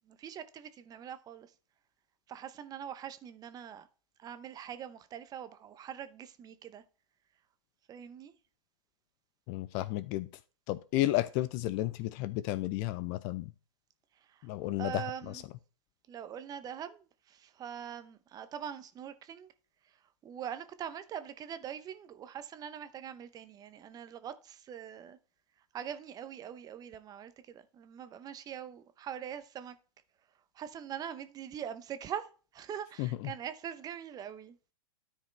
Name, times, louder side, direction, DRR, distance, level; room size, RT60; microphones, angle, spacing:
voice 1, 0.0-1.5 2.3-3.9 4.2-6.8 7.9-8.3 14.2-14.5 14.8-15.4 16.1-19.5 19.8-20.0 20.2-25.2 25.7-29.8 30.5-34.6, right 9 dB, 20° right, 0.7 m, -43 dB
voice 2, 9.5-10.3 10.7-13.5 14.4-15.0 33.0-33.1, left 16 dB, 35° left, 0.5 m, -32 dB
13.0 x 4.8 x 3.3 m
hypercardioid pair, 120°, 18 cm